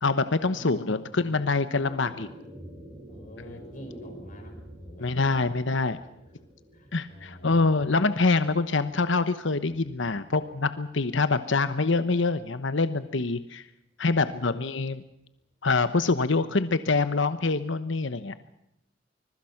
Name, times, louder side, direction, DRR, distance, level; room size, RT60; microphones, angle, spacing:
voice 1, 0.0-2.3 3.5-3.6 5.0-6.0 6.9-13.7 14.0-15.0 15.6-18.3, left 3 dB, 70° left, 12 dB, 1.1 m, -25 dB
voice 2, 0.5-1.4 1.8-2.3 3.1-5.5 6.4-7.9 14.1-14.6, equal, 45° left, 1 dB, 4.9 m, -49 dB
sound 1, 0.9-11.4, equal, 15° right, 6.0 m, -49 dB
25.0 x 22.5 x 5.9 m, 0.82 s
head